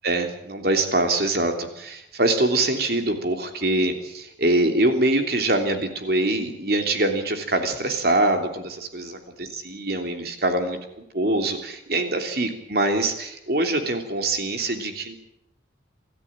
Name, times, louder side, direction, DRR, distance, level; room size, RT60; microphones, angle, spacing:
voice 1, 0.0-10.8 11.1-15.2, right 2 dB, 55° right, 5 dB, 3.2 m, -24 dB
27.5 x 14.0 x 8.9 m, 0.80 s
head